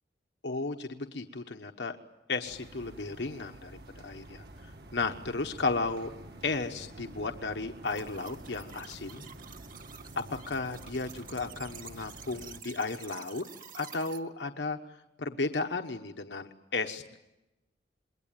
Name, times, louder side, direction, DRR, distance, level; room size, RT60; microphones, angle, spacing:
voice 1, 0.4-2.0 2.3-6.1 6.4-9.3 10.3-13.4 13.7-14.8 15.2-17.2, left 3 dB, 85° left, 5 dB, 1.2 m, -34 dB
sound 1, 2.4-12.6, right 1 dB, 65° right, 1.8 m, -49 dB
sound 2, 7.8-14.2, right 8 dB, 50° right, 1.7 m, -49 dB
27.5 x 22.0 x 9.1 m, 0.97 s
head